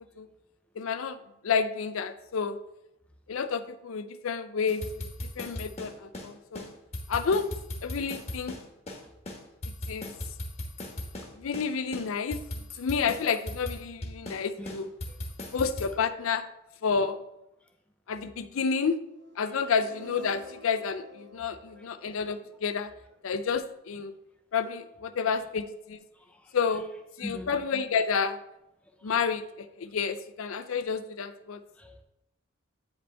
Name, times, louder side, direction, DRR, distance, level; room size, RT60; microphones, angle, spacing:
voice 1, 0.8-1.2 1.4-2.6 3.3-4.8 5.4-6.7 7.1-7.5 7.8-8.6 9.9-10.1 11.3-12.4 12.8-14.9 15.5-16.4 16.8-17.2 18.1-19.0 19.4-22.9 23.2-24.1 24.5-26.0 26.5-26.9 27.2-28.4 29.0-31.6, left 5 dB, 75° left, 11 dB, 0.5 m, -30 dB
sound 1, 4.7-6.3 6.6-6.7 6.9-9.0 9.3-11.3 11.5-11.7 11.9-14.4 14.7-15.9, left 1 dB, 30° left, 1.2 m, -37 dB
sound 2, 19.1-23.2, left 1 dB, 50° right, 0.7 m, -51 dB
voice 2, 21.8-22.2 26.2-26.5 27.2-27.5 29.0-29.1 31.8-32.0, left 1 dB, 5° left, 3 dB, 0.6 m, -43 dB
9.1 x 5.1 x 3.4 m, 0.85 s
head